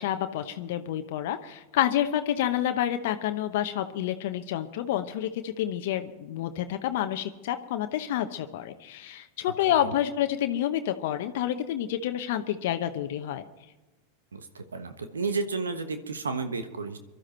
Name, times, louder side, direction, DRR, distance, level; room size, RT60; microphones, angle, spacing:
voice 1, 0.0-13.4, left 11 dB, 65° left, 8 dB, 0.9 m, -29 dB
voice 2, 14.3-17.0, right 4 dB, 85° right, 8 dB, 1.2 m, -32 dB
23.5 x 12.5 x 4.4 m, 1.1 s
hypercardioid pair, 90°, 0 cm